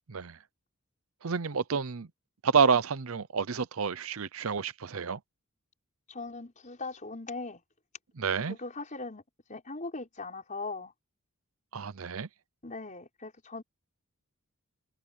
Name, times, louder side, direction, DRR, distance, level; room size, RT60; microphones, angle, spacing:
voice 1, 1.2-2.1 2.4-5.2 8.2-8.6 11.7-12.3, right 5 dB, 70° right, 0.7 m, -29 dB
voice 2, 6.1-7.6 8.4-9.2 9.5-10.9 12.6-13.6, left 3 dB, 35° left, 5.3 m, -39 dB
head